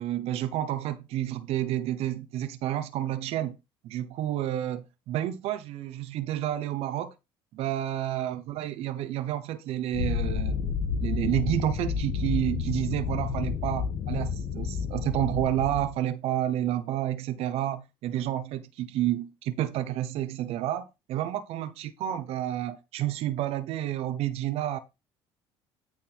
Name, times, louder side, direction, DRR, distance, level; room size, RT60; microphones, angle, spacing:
voice 1, 0.0-3.6 3.8-7.1 7.5-10.6 11.0-24.8, right 12 dB, 70° right, 0.9 m, -30 dB
sound 1, 9.9-15.9, left 6 dB, 70° left, 1.6 m, -30 dB
8.9 x 3.8 x 4.5 m
supercardioid pair, 80°, 11 cm